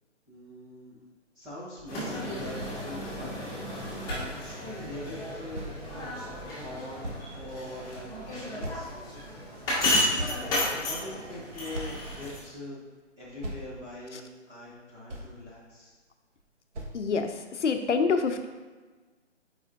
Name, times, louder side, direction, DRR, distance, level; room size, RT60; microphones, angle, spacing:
voice 1, 0.3-1.0 1.3-3.4 4.0-5.7 6.6-7.1 7.3-8.9 10.1-12.8 13.2-15.9, left 1 dB, 5° right, -10 dB, 0.6 m, -42 dB
sound 1, 1.9-12.4, left 1 dB, 10° left, 1.4 m, -33 dB
sound 2, 2.6-2.8 3.7-3.8 4.1-4.3 5.5-5.8 6.4-6.5 7.0-7.6 8.6-9.2 9.7-9.8 10.2-10.8 11.3-11.4 11.7-12.1 12.9-13.0 13.4-13.6 14.7-14.8 15.1-15.4 16.4-16.5 16.7-17.0, right 1 dB, 70° right, 1.4 m, -37 dB
voice 2, 16.9-18.5, left 5 dB, 70° left, 7 dB, 0.7 m, -26 dB
7.9 x 4.9 x 2.6 m, 1.3 s
figure-of-eight pair, 150°, 37 cm